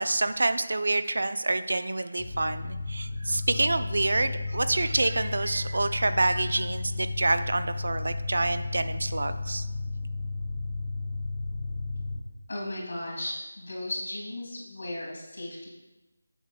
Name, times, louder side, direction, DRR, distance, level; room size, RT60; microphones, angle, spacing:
voice 1, 0.0-9.7, right 2 dB, 70° right, 11 dB, 0.5 m, -27 dB
sound 1, 2.2-12.2, left 3 dB, 30° left, 1.1 m, -33 dB
voice 2, 12.5-15.7, left 1 dB, 70° left, -3 dB, 2.7 m, -36 dB
11.0 x 7.9 x 2.3 m, 1.1 s
figure-of-eight pair, 165°, 0 cm